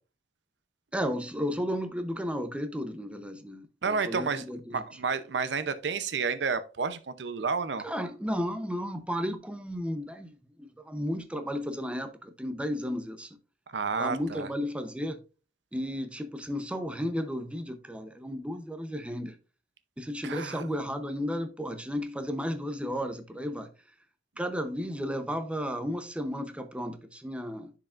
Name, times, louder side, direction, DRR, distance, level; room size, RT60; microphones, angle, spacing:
voice 1, 0.9-4.8 7.8-13.3 14.0-15.2 15.7-19.3 20.0-23.7 24.4-27.7, equal, 5° right, 0.7 m, -33 dB
voice 2, 3.8-4.4 4.7-7.8 13.7-14.5 20.2-20.6, right 5 dB, 75° right, 0.6 m, -30 dB
10.5 x 4.8 x 2.5 m
head